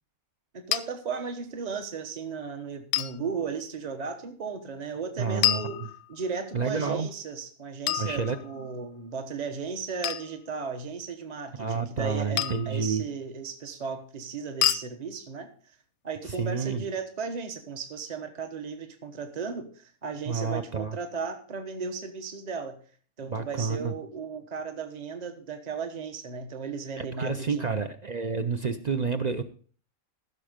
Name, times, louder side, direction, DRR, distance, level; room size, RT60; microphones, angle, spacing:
voice 1, 0.5-5.8 6.1-15.7 16.0-22.8 23.2-27.8, right 5 dB, 30° right, 6 dB, 1.2 m, -35 dB
sound 1, 0.7-0.8 2.9-3.2 5.4-6.3 7.9-8.8 10.0-10.3 12.4-12.8 14.6-14.9, left 13 dB, 85° left, 1.2 m, -28 dB
voice 2, 5.2-5.9 6.5-7.1 8.0-8.4 11.6-13.1 16.3-16.8 20.3-21.0 23.3-23.9 27.0-29.4, right 5 dB, 50° right, 9 dB, 0.5 m, -29 dB
15.0 x 6.4 x 5.1 m, 0.43 s
omnidirectional pair, 1.5 m